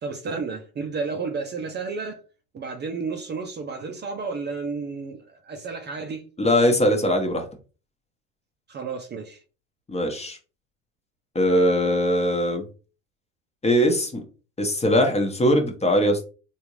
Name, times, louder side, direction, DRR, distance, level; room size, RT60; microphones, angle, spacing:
voice 1, 0.0-2.2 2.5-6.3 8.7-9.4, right 4 dB, 30° right, 0.6 m, -32 dB
voice 2, 6.4-7.5 9.9-10.4 11.3-12.6 13.6-14.2 14.6-16.2, equal, 15° left, 1.0 m, -21 dB
3.5 x 2.6 x 3.0 m
hypercardioid pair, 85°, 36 cm